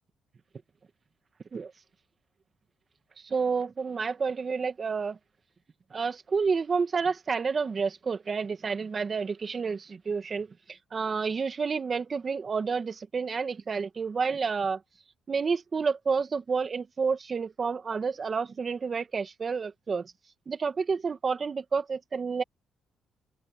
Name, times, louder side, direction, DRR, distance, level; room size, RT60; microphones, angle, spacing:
voice 1, 3.3-5.2 5.9-10.5 10.9-14.8 15.3-20.1 20.5-22.4, right 5 dB, 40° right, 2.2 m, -29 dB
open air
cardioid pair, 90°, 0 cm